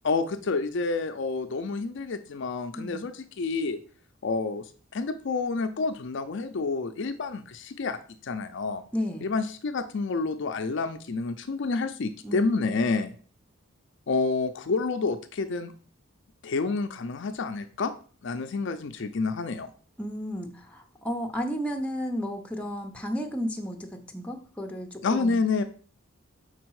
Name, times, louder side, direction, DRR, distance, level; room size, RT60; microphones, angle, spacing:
voice 1, 0.0-3.8 4.2-8.8 9.2-13.1 14.1-15.7 16.4-17.9 18.2-19.7 25.0-25.6, left 4 dB, 60° left, 9 dB, 0.4 m, -29 dB
voice 2, 2.7-3.1 8.9-9.3 12.2-12.4 20.0-25.4, equal, 5° left, 2 dB, 0.7 m, -33 dB
5.1 x 4.0 x 4.7 m, 0.42 s
head